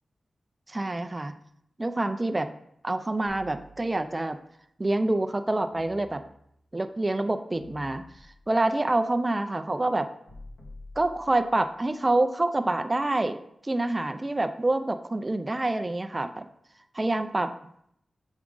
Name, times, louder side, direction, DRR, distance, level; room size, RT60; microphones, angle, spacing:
voice 1, 0.7-1.3 1.8-2.5 2.8-4.4 4.8-6.2 6.7-8.0 8.5-10.1 11.0-13.4 13.6-16.5 16.9-17.5, right 2 dB, 25° right, 8 dB, 0.4 m, -26 dB
sound 1, 3.3-4.3 5.7-6.7 7.5-8.6 10.3-11.7, left 1 dB, 70° left, 1.9 m, -49 dB
7.1 x 3.6 x 3.7 m, 0.71 s
wide cardioid pair, 80°, 0 cm